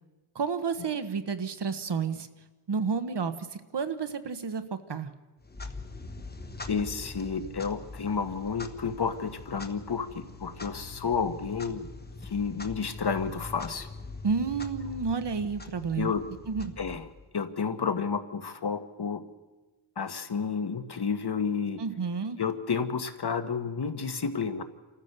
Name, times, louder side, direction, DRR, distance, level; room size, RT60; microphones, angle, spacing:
voice 1, 0.3-2.3 2.7-5.1 14.2-16.1 16.5-16.7 21.8-22.4, right 5 dB, 55° right, 10 dB, 1.3 m, -31 dB
Clock, 5.4-17.4, left 3 dB, 20° left, 1.2 m, -43 dB
voice 2, 6.7-11.9 12.3-13.9 16.0-16.2 16.8-17.0 17.3-19.2 20.0-21.8 22.4-24.6, left 5 dB, 50° left, 9 dB, 1.4 m, -31 dB
28.5 x 14.5 x 6.7 m, 1.2 s
wide cardioid pair, 145°, 49 cm